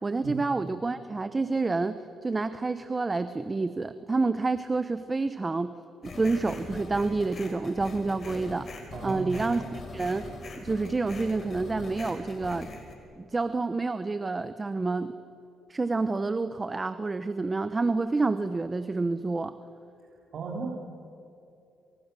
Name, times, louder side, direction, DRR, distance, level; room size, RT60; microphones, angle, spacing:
voice 1, 0.0-5.7 6.0-8.7 9.0-10.3 10.6-12.7 13.1-15.1 15.7-19.6, right 3 dB, 25° right, 12 dB, 0.9 m, -28 dB
sound 1, 6.0-12.9, left 3 dB, 45° left, 5.2 m, -42 dB
voice 2, 8.9-9.6 20.3-20.7, right 5 dB, 60° right, -1 dB, 3.5 m, -35 dB
29.0 x 27.0 x 6.9 m, 2.7 s
cardioid pair, 90°, 0 cm